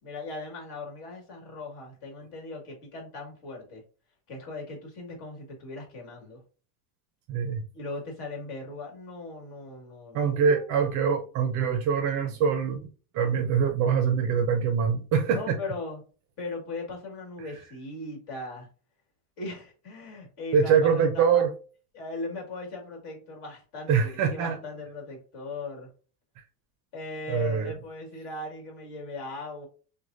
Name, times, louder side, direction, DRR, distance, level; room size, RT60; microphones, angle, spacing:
voice 1, 0.0-3.8 4.3-6.4 7.7-10.7 15.3-16.0 16.4-18.7 19.4-21.4 21.9-25.9 26.9-29.7, left 2 dB, 55° left, 1.9 m, -39 dB
voice 2, 7.3-7.6 10.1-12.8 13.1-15.6 20.5-21.5 23.9-24.6 27.3-27.7, right 6 dB, 40° right, 0.5 m, -24 dB
6.2 x 2.2 x 2.5 m
cardioid pair, 165°, 47 cm